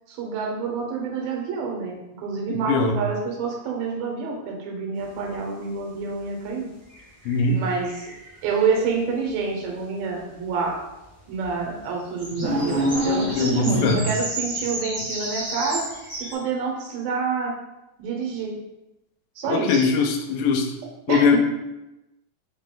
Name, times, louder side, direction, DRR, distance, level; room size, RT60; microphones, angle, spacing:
voice 1, 0.1-6.7 7.5-8.1 8.4-10.8 11.3-15.9 16.2-17.5 18.0-18.5 19.4-19.9 21.1-21.4, right 5 dB, 90° right, 1 dB, 2.6 m, -28 dB
voice 2, 2.5-3.0 7.3-7.6 13.4-14.0 19.5-20.7 21.1-21.4, left 4 dB, 85° left, 4 dB, 2.2 m, -21 dB
sound 1, 5.1-5.2 6.9-8.8 10.7-10.8 11.4-16.3, right 2 dB, 55° right, 0.7 m, -33 dB
sound 2, 12.3-14.3, equal, 55° left, 0.8 m, -25 dB
5.6 x 2.2 x 3.6 m, 0.96 s
omnidirectional pair, 4.0 m